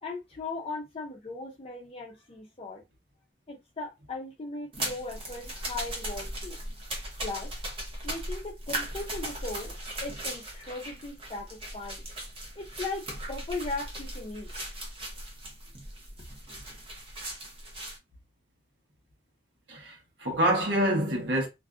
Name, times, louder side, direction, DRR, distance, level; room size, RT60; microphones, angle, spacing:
voice 1, 0.0-2.8 3.5-6.6 7.2-7.5 8.0-9.7 10.0-12.0 12.6-14.5, left 3 dB, 35° left, 0.5 m, -38 dB
sound 1, 4.7-18.0, right 1 dB, 30° right, 0.7 m, -38 dB
voice 2, 19.7-21.5, right 1 dB, 85° right, 1.0 m, -26 dB
2.5 x 2.4 x 2.3 m
head